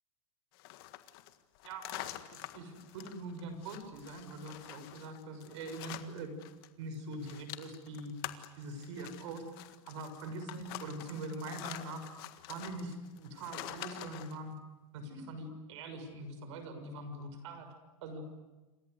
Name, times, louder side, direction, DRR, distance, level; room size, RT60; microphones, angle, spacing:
sound 1, 0.5-6.7 6.9-14.4, left 15 dB, 45° left, 1.7 m, -47 dB
voice 1, 1.6-6.4 6.8-8.1 8.6-12.1 12.5-14.6 14.9-17.7 18.0-18.3, right 2 dB, 60° right, 8 dB, 6.7 m, -43 dB
28.0 x 26.0 x 8.2 m, 1.2 s
supercardioid pair, 175°, 17 cm